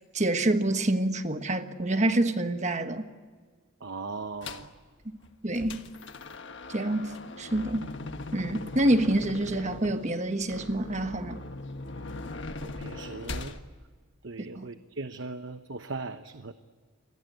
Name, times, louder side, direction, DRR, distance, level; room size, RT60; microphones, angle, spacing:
voice 1, 0.1-3.0 5.4-5.8 6.7-7.9 8.3-11.4 14.6-14.7, right 1 dB, 35° right, 1.3 m, -27 dB
voice 2, 3.8-4.7 12.6-13.6 14.2-16.5, right 3 dB, 60° right, 1.0 m, -38 dB
sound 1, 4.4-4.8 5.2-13.6, left 2 dB, 55° left, 1.4 m, -40 dB
29.0 x 23.0 x 8.1 m
head